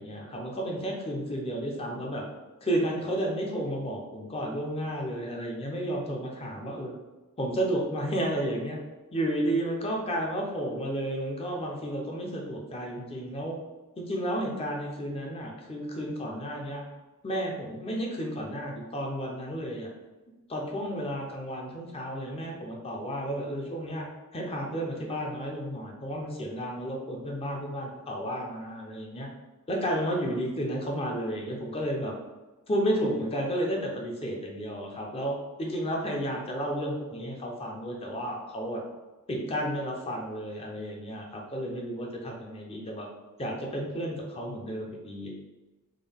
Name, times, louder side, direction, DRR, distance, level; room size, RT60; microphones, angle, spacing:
voice 1, 0.0-2.2 2.6-6.9 7.4-8.8 9.1-13.6 14.0-16.8 17.2-19.9 20.5-24.1 24.3-29.3 29.7-32.1 32.7-38.8 39.3-43.1 43.4-45.3, equal, 25° left, 0 dB, 0.6 m, -32 dB
3.7 x 2.3 x 3.4 m, 1.1 s
head